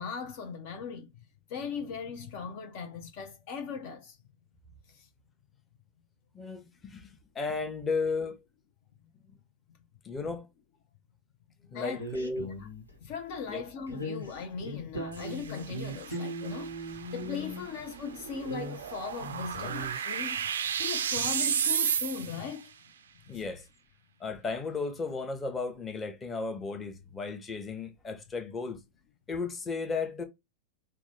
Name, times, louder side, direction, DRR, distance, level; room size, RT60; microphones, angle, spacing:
voice 1, 0.0-4.2 4.9-5.1 11.7-12.0 12.6-12.7 13.0-20.5 20.8-22.7 23.3-23.4, left 6 dB, 50° left, 0.5 m, -39 dB
voice 2, 6.3-7.1 7.3-8.4 9.3-9.4 10.0-10.5 11.7-12.5 13.5-13.6 23.3-23.6 24.2-28.8 29.3-30.2, left 4 dB, 20° left, 0.8 m, -34 dB
sound 1, 12.0-13.0 13.9-17.9 18.3-20.0, equal, 85° left, 1.1 m, -39 dB
sound 2, 15.1-22.6, right 8 dB, 65° right, 0.3 m, -33 dB
3.5 x 2.1 x 3.3 m
figure-of-eight pair, 90°, 0 cm